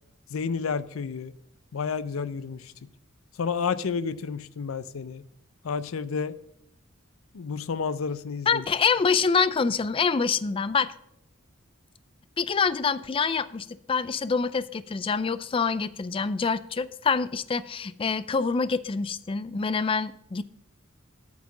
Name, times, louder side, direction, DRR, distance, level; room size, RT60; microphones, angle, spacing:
voice 1, 0.3-1.4 1.7-2.7 3.4-5.3 5.6-6.4 7.3-8.7, left 5 dB, 80° left, 0.5 m, -30 dB
voice 2, 8.5-10.9 12.4-20.4, left 5 dB, 25° left, 0.3 m, -26 dB
8.8 x 5.8 x 7.3 m
head